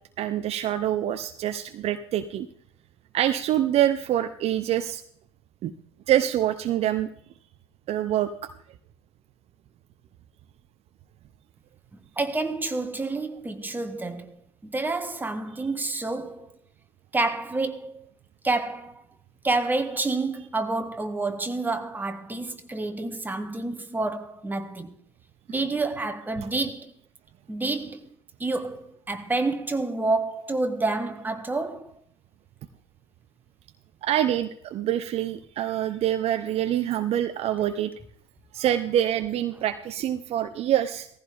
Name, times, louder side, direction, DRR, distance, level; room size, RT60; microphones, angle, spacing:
voice 1, 0.2-2.5 3.1-5.0 5.6-5.7 6.1-7.1 7.9-8.3 34.0-37.9 38.5-41.1, right 11 dB, 40° right, 0.8 m, -25 dB
voice 2, 12.2-14.4 14.6-16.6 17.1-18.1 18.4-19.0 19.4-24.9 25.5-26.9 27.5-28.1 28.4-31.9, right 3 dB, 10° right, 1.6 m, -28 dB
18.0 x 15.0 x 3.6 m
figure-of-eight pair, 70°, 15 cm